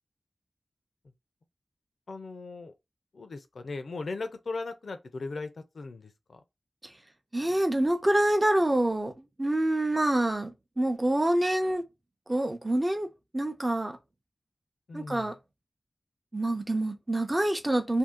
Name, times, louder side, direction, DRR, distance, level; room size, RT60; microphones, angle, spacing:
voice 1, 2.1-2.7 3.1-6.4 14.9-15.3, left 3 dB, 75° left, 0.6 m, -38 dB
voice 2, 7.3-11.8 12.3-13.1 13.3-14.0 14.9-15.4 16.3-18.0, right 1 dB, 25° right, 0.7 m, -26 dB
2.7 x 2.7 x 3.7 m
wide cardioid pair, 85°, 0 cm